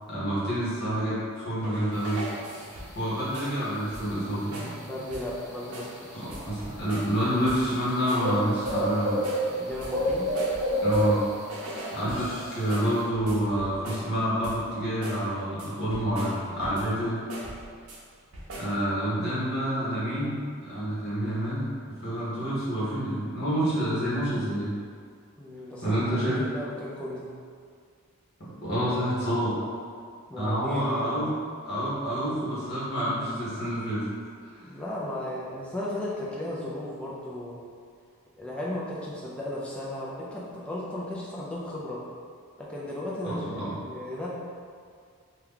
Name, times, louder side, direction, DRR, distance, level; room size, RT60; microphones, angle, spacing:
voice 1, 0.1-2.2 2.9-4.7 6.1-9.2 10.8-11.2 11.9-17.2 18.5-20.3 20.6-24.7 25.8-26.4 28.6-29.5 30.4-31.3 31.6-34.0 43.2-43.7, equal, 45° left, -10 dB, 1.2 m, -28 dB
sound 1, 1.6-3.0 3.3-3.6 3.9-4.2 4.5-4.8 5.1-5.4 5.7-6.0 6.3-7.2 7.5-8.3 8.6-8.9 9.2-11.2 11.5-14.1 14.4-14.7 15.0-15.3 15.6-17.0 17.3-18.0 18.3-18.8, right 1 dB, 80° right, 0.6 m, -41 dB
sound 2, 1.9-13.0, equal, 50° right, 0.8 m, -32 dB
voice 2, 4.9-6.4 9.5-10.4 25.4-27.3 30.3-31.4 34.6-37.6 38.4-42.0 42.6-44.3, left 1 dB, 5° left, -6 dB, 0.4 m, -35 dB
2.9 x 2.3 x 3.6 m, 2.2 s
head